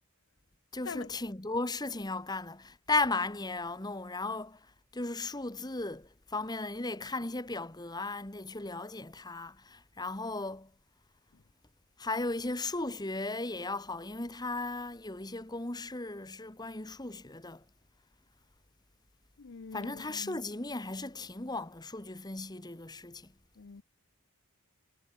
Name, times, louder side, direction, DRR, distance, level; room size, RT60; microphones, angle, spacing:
voice 1, 0.7-4.6 4.9-10.7 12.0-17.6 19.7-23.3, left 3 dB, 20° left, 1.5 m, -36 dB
voice 2, 19.4-20.4 23.6-23.8, left 5 dB, 55° left, 0.6 m, -44 dB
head